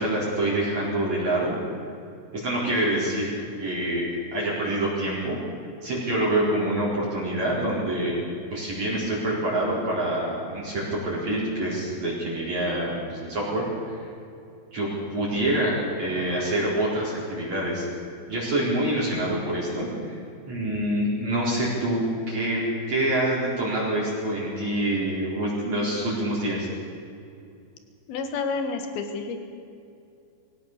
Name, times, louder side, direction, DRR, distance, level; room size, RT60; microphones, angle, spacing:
voice 1, 0.0-1.6 2.3-3.3 3.6-5.4 5.8-8.1 8.5-14.0 14.7-17.9 18.3-20.2 20.5-22.6 22.9-26.7, right 1 dB, 35° right, -6 dB, 5.4 m, -26 dB
voice 2, 28.1-29.4, left 4 dB, 60° left, 6 dB, 3.0 m, -29 dB
22.5 x 18.0 x 6.9 m, 2.5 s
omnidirectional pair, 5.8 m